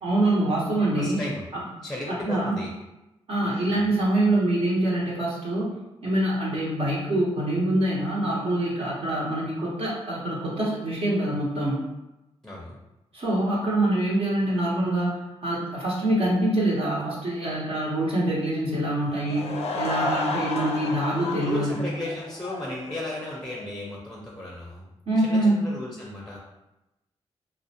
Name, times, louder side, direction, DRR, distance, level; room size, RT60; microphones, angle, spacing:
voice 1, 0.0-1.2 1.5-1.6 2.3-2.6 3.3-5.7 6.0-11.8 13.1-21.9 25.1-25.6, right 1 dB, 55° right, -7 dB, 0.8 m, -25 dB
voice 2, 0.9-1.5 1.8-2.7 3.4-3.8 12.4-12.8 21.4-24.9 25.2-26.4, left 1 dB, 5° left, -3 dB, 0.6 m, -35 dB
Laughter / Crowd, 19.1-23.7, left 3 dB, 60° left, 0.4 m, -32 dB
2.4 x 2.1 x 2.7 m, 0.95 s
cardioid pair, 65°, 12 cm